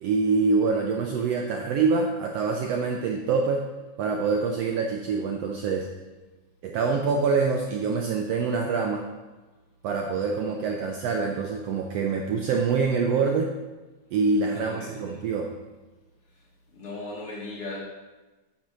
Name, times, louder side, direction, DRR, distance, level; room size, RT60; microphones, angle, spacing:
voice 1, 0.0-3.7 4.0-5.9 6.6-9.0 9.8-13.5 14.1-15.5, right 4 dB, 75° right, 2 dB, 1.5 m, -25 dB
voice 2, 10.3-10.9 14.4-15.0 16.7-17.8, left 2 dB, 55° left, -3 dB, 2.3 m, -38 dB
8.9 x 4.4 x 6.0 m, 1.2 s
omnidirectional pair, 3.4 m